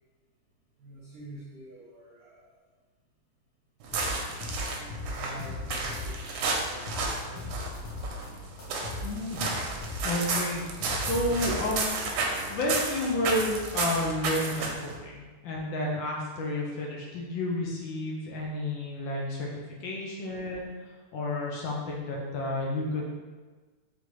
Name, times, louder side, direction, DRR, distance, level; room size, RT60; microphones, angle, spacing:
voice 1, 0.8-2.6 5.1-6.9 7.2-7.8, right 1 dB, 60° right, -6 dB, 1.1 m, -47 dB
sound 1, 3.8-15.0, right 3 dB, 75° right, 1.3 m, -32 dB
sound 2, 3.9-6.3 6.6-8.3 8.6-11.8, left 2 dB, 55° left, 1.4 m, -37 dB
voice 2, 9.0-9.5 10.0-10.6 11.0-12.1 12.5-19.5 19.8-20.7 21.1-23.0, left 1 dB, 70° left, -3 dB, 1.2 m, -31 dB
3.9 x 3.3 x 3.0 m, 1.3 s
omnidirectional pair, 2.4 m